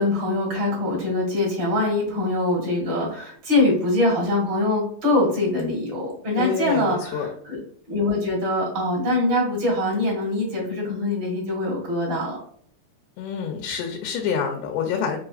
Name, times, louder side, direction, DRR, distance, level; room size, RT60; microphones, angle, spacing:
voice 1, 0.0-7.6 7.9-12.4, left 2 dB, 40° right, -4 dB, 1.9 m, -23 dB
voice 2, 6.4-6.8 7.1-7.3 13.2-15.2, left 7 dB, 80° left, 2 dB, 2.7 m, -27 dB
5.9 x 3.1 x 2.4 m, 0.62 s
omnidirectional pair, 4.6 m